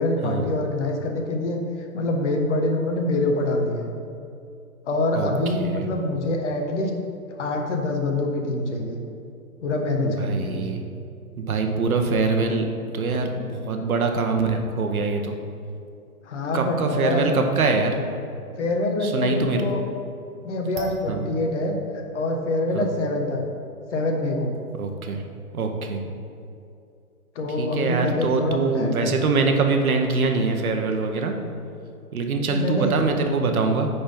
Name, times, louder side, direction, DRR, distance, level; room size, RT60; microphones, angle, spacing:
voice 1, 0.0-1.6 1.9-3.9 4.9-6.9 7.4-9.0 9.6-10.7 16.2-17.3 18.6-19.8 20.4-21.8 22.1-23.4 23.9-24.5 27.3-29.2 32.5-32.9, left 2 dB, 50° left, 2 dB, 1.4 m, -25 dB
voice 2, 5.1-5.9 10.0-10.8 11.4-12.7 12.9-15.3 16.5-17.9 19.0-19.6 21.1-21.2 22.7-22.9 24.7-25.2 25.5-26.0 27.6-31.4 32.1-33.9, right 4 dB, 65° right, 4 dB, 1.2 m, -24 dB
sound 1, 20.7-22.0 22.3-22.4 23.5-23.6 24.3-24.4 24.5-25.4, right 4 dB, 25° right, 0.9 m, -41 dB
9.2 x 4.3 x 5.4 m, 2.6 s
hypercardioid pair, 135°, 45 cm